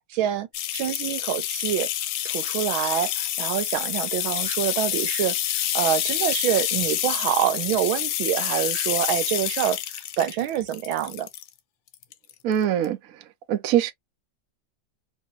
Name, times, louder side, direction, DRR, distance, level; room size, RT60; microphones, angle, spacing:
voice 1, 0.1-0.5 0.7-1.9 2.2-5.4 5.7-9.8 10.2-11.3, right 11 dB, 85° right, 1.6 m, -26 dB
sound 1, 0.5-11.5 11.9-12.5 12.8-12.9, left 12 dB, 90° left, 1.4 m, -28 dB
voice 2, 12.4-13.0 13.5-13.9, right 10 dB, 65° right, 0.9 m, -22 dB
3.1 x 3.0 x 3.0 m
omnidirectional pair, 2.1 m